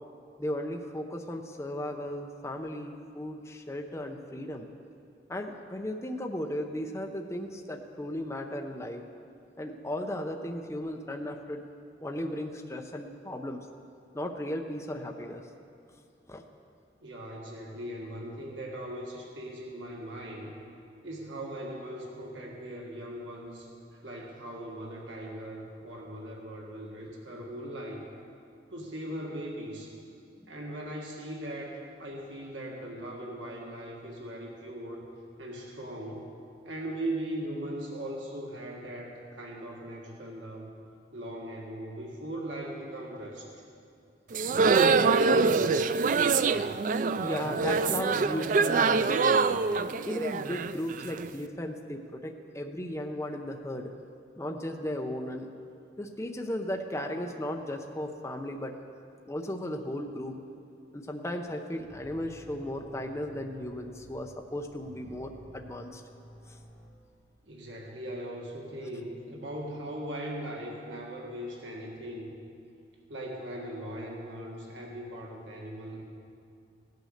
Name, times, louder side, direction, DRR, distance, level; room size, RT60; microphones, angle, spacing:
voice 1, 0.4-4.7 5.3-9.0 9.6-11.6 12.0-13.6 14.1-15.4 16.3-16.4 47.2-49.4 49.7-53.9 54.4-55.5 56.0-58.7 59.2-60.4 60.9-66.0, left 1 dB, 15° left, 3 dB, 0.7 m, -36 dB
voice 2, 17.0-20.5 21.0-28.1 28.7-29.9 30.5-35.0 35.4-36.4 36.6-40.7 41.1-43.5 67.4-72.3 73.1-76.0, right 1 dB, 85° right, -1 dB, 1.8 m, -39 dB
sound 1, 44.3-51.3, right 4 dB, 45° right, 0.3 m, -25 dB
sound 2, 61.8-66.9, equal, 20° right, 3.1 m, -52 dB
16.5 x 9.3 x 6.5 m, 2.4 s
head